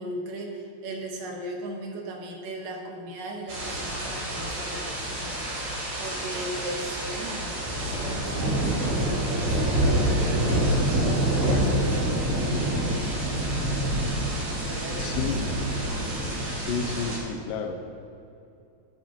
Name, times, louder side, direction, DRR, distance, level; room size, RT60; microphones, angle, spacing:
voice 1, 0.0-13.3 14.5-15.4, right 1 dB, 90° right, 0 dB, 3.1 m, -38 dB
sound 1, 3.5-17.2, right 1 dB, 55° right, 4.4 m, -27 dB
voice 2, 15.0-15.4 16.6-17.8, left 5 dB, 85° left, 6 dB, 2.5 m, -31 dB
13.0 x 12.5 x 3.0 m, 2.6 s
omnidirectional pair, 3.7 m